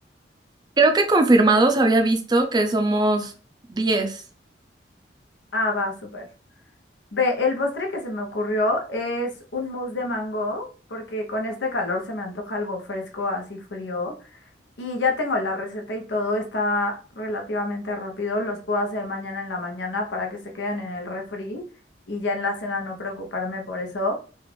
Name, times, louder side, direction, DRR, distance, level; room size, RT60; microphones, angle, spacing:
voice 1, 0.8-3.3 3.7-4.2, right 2 dB, 25° right, 5 dB, 0.5 m, -19 dB
voice 2, 5.5-6.3 7.1-14.4 14.8-21.6 22.1-24.1, left 2 dB, 90° left, 2 dB, 0.9 m, -27 dB
3.1 x 2.4 x 3.4 m, 0.37 s
head